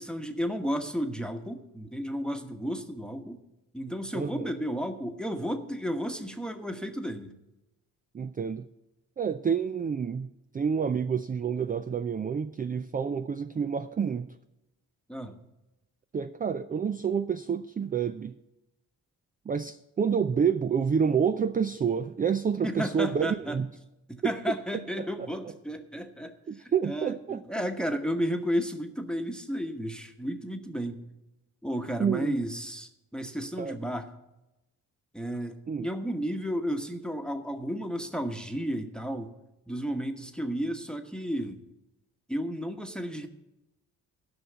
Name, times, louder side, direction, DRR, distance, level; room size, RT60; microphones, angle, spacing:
voice 1, 0.0-3.4 3.7-7.3 15.1-15.4 22.6-23.6 24.1-31.0 31.6-34.1 35.1-39.3 39.7-41.6 42.3-43.3, equal, ahead, 7 dB, 1.1 m, -33 dB
voice 2, 4.1-4.5 8.1-8.7 9.2-14.4 16.1-18.4 19.5-23.7 24.2-24.5 25.0-25.5 26.5-27.4 32.0-32.4 33.6-33.8 35.7-35.9, right 7 dB, 20° right, 11 dB, 0.4 m, -29 dB
11.0 x 5.6 x 8.2 m, 0.95 s
hypercardioid pair, 50°, 41 cm